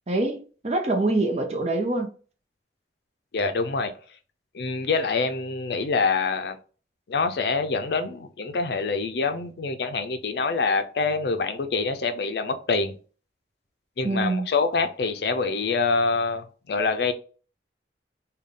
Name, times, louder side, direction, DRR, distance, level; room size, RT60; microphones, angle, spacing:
voice 1, 0.1-2.1 14.0-14.5, right 2 dB, 40° right, 0.7 m, -25 dB
voice 2, 3.3-3.9 4.5-6.6 7.1-13.0 14.0-17.1, left 4 dB, 65° left, 0.4 m, -25 dB
3.5 x 2.3 x 3.7 m
head